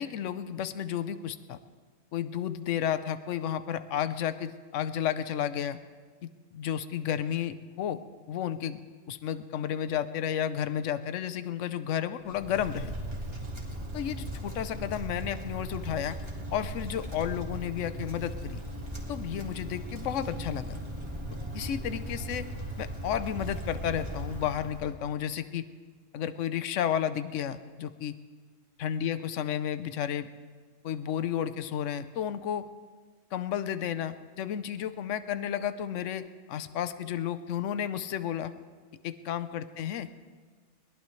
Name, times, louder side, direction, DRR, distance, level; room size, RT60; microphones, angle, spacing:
voice 1, 0.0-1.6 2.1-5.8 6.2-8.0 8.3-8.8 9.1-12.9 13.9-16.2 16.5-18.6 19.1-20.8 21.5-22.5 22.8-25.6 26.1-28.1 28.8-30.3 30.8-32.7 33.3-38.5 39.0-40.1, left 9 dB, 75° left, 12 dB, 1.0 m, -32 dB
Wind, 12.2-25.1, right 1 dB, 20° right, 1.9 m, -38 dB
22.0 x 18.5 x 3.2 m, 1.5 s
omnidirectional pair, 1.3 m